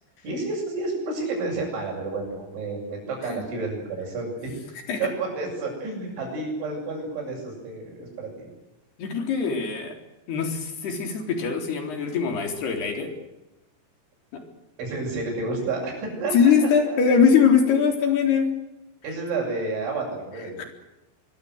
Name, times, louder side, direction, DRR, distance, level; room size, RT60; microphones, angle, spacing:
voice 1, 0.2-4.3 5.0-8.5 14.8-16.5 16.9-17.0 19.0-20.7, right 3 dB, 90° right, -5 dB, 9.6 m, -30 dB
voice 2, 9.0-9.9 10.3-13.1 14.3-14.4 16.3-18.5 20.6-20.7, left 6 dB, 60° left, 5 dB, 5.8 m, -22 dB
24.5 x 23.0 x 8.2 m, 0.98 s
omnidirectional pair, 5.2 m